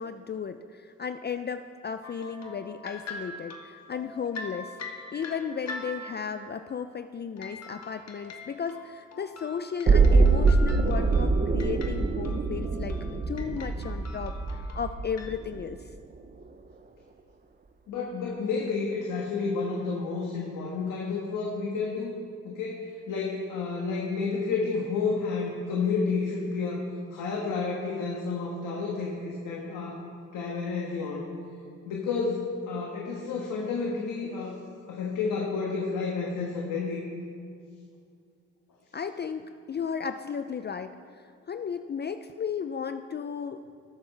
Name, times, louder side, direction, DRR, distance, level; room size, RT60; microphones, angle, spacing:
voice 1, 0.0-4.8 5.1-13.0 13.3-15.9 38.9-43.6, left 6 dB, 35° left, 9 dB, 0.4 m, -35 dB
sound 1, 2.0-6.4 7.4-15.4, left 3 dB, 55° left, 1.3 m, -43 dB
sound 2, 9.9-15.8 16.2-16.3, right 4 dB, 30° right, 0.8 m, -24 dB
voice 2, 17.9-22.1 22.4-30.0 30.3-31.3 31.8-34.6 34.9-37.0, left 4 dB, 80° left, -2 dB, 1.5 m, -30 dB
19.5 x 7.1 x 3.3 m, 2.3 s
supercardioid pair, 60°, 31 cm